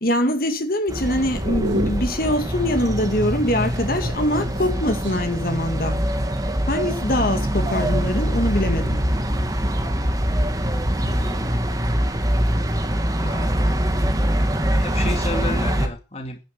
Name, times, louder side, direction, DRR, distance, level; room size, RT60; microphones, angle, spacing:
voice 1, 0.0-6.0 6.7-9.0, left 1 dB, 50° left, 2.1 m, -23 dB
sound 1, 0.9-15.9, equal, 20° right, 1.9 m, -23 dB
sound 2, 1.2-2.4 4.3-5.3 6.1-6.6, right 1 dB, 75° right, 3.7 m, -29 dB
voice 2, 11.0-11.5 13.2-13.6 14.7-16.4, left 2 dB, 35° left, 2.1 m, -32 dB
10.5 x 9.9 x 6.7 m
head